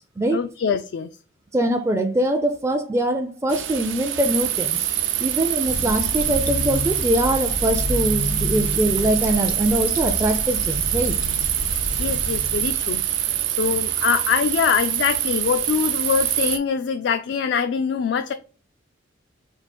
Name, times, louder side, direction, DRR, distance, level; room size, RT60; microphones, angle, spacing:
voice 1, 0.3-1.1 11.7-18.3, left 7 dB, 60° left, 0.3 m, -24 dB
voice 2, 1.5-4.9 5.2-11.2, right 1 dB, 15° right, 0.4 m, -23 dB
sound 1, 3.5-16.6, right 11 dB, 80° right, 0.5 m, -25 dB
Fill (with liquid), 5.7-13.3, left 1 dB, 85° left, 0.8 m, -30 dB
4.6 x 2.5 x 4.2 m
head